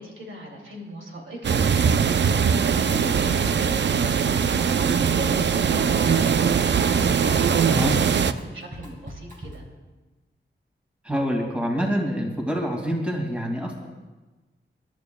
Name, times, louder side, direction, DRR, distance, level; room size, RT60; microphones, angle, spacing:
voice 1, 0.0-4.8 5.1-6.6 7.0-9.6, right 1 dB, 85° right, -1 dB, 2.7 m, -37 dB
sound 1, 1.4-8.3, right 7 dB, 65° right, 0.5 m, -21 dB
Drum kit, 2.4-2.9 3.2-9.7, right 1 dB, 40° right, 2.6 m, -40 dB
voice 2, 11.0-13.9, equal, 5° right, 0 dB, 2.2 m, -26 dB
27.0 x 12.0 x 2.3 m, 1.2 s
wide cardioid pair, 135°, 20 cm